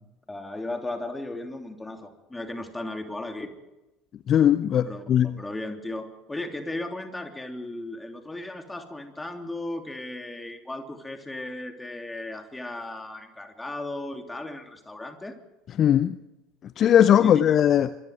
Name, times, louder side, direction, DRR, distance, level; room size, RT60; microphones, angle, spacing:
voice 1, 0.3-3.5 4.8-15.4 17.2-17.6, left 2 dB, 10° left, 3.1 m, -36 dB
voice 2, 4.3-5.3 15.8-16.2 16.8-17.9, left 10 dB, 40° left, 0.6 m, -19 dB
26.0 x 22.5 x 4.8 m
figure-of-eight pair, 70°, 0 cm